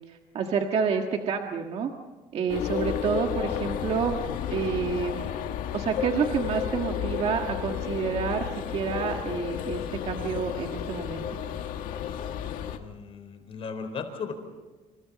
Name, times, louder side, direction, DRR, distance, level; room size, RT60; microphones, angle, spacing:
voice 1, 0.1-1.9 2.3-4.2 4.5-5.3 5.7-11.4, right 6 dB, 45° right, 3 dB, 1.7 m, -29 dB
sound 1, 2.5-12.8, left 9 dB, 70° left, 1.9 m, -32 dB
voice 2, 12.7-14.3, left 5 dB, 40° left, 6 dB, 4.1 m, -36 dB
29.0 x 28.0 x 4.2 m, 1.3 s
cardioid pair, 165°, 15 cm